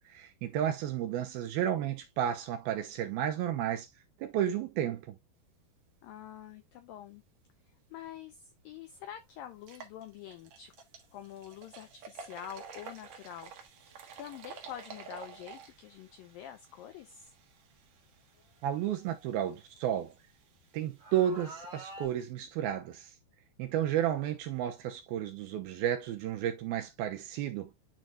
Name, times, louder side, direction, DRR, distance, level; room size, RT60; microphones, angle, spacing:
voice 1, 0.1-3.9 4.2-5.2 18.6-20.1 20.7-23.1 23.6-27.7, right 10 dB, 75° right, 2.4 m, -32 dB
voice 2, 6.0-7.2 7.9-10.7 11.1-13.7 14.2-17.3, left 10 dB, 90° left, 2.0 m, -46 dB
sound 1, 8.3-8.4 8.8-8.9 9.5-22.3, right 6 dB, 60° right, 2.0 m, -52 dB
sound 2, 9.2-9.4 10.8-10.9 13.9-14.1 15.0-15.1 16.2-16.3 17.0-17.1 18.3-20.1 21.0-22.1, right 1 dB, 35° right, 0.9 m, -49 dB
10.5 x 4.2 x 2.4 m
omnidirectional pair, 5.0 m